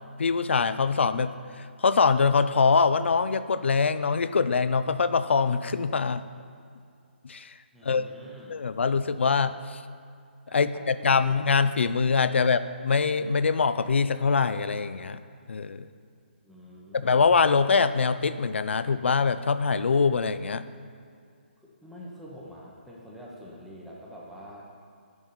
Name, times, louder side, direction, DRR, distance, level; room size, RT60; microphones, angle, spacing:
voice 1, 0.2-1.3 1.6-6.2 7.2-7.5 7.8-8.1 8.5-9.8 10.5-15.2 15.5-15.9 16.9-20.7, left 5 dB, 80° left, 13 dB, 0.5 m, -23 dB
voice 2, 7.7-8.5 10.6-11.4 16.4-17.2 21.6-24.6, equal, ahead, -5 dB, 0.8 m, -46 dB
11.0 x 4.0 x 7.2 m, 2.3 s
hypercardioid pair, 170°, 6 cm